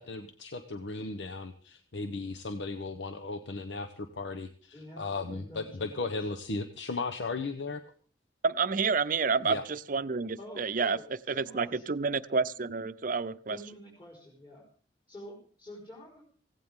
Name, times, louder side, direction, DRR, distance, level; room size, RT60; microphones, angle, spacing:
voice 1, 0.0-7.8 9.4-9.6, left 3 dB, 85° left, 1.0 m, -36 dB
voice 2, 4.7-6.3 10.4-11.8 12.3-12.4 13.5-14.6 15.1-16.2, left 1 dB, 30° left, 4.8 m, -48 dB
voice 3, 8.4-11.0 11.3-13.6, right 5 dB, 50° right, 0.6 m, -29 dB
17.0 x 16.5 x 3.7 m
head